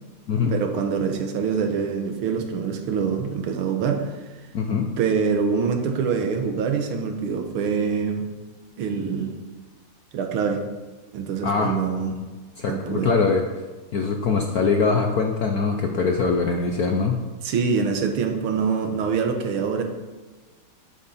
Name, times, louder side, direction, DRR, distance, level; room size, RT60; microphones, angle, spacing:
voice 1, 0.5-4.1 5.0-8.2 8.8-9.3 10.1-10.6 11.1-12.2 12.7-13.1 17.4-19.8, right 6 dB, 75° right, 5 dB, 1.9 m, -25 dB
voice 2, 4.5-4.9 11.4-11.7 12.6-13.4 13.9-17.2, left 4 dB, 65° left, 3 dB, 0.9 m, -22 dB
10.0 x 8.6 x 4.2 m, 1.3 s
omnidirectional pair, 2.4 m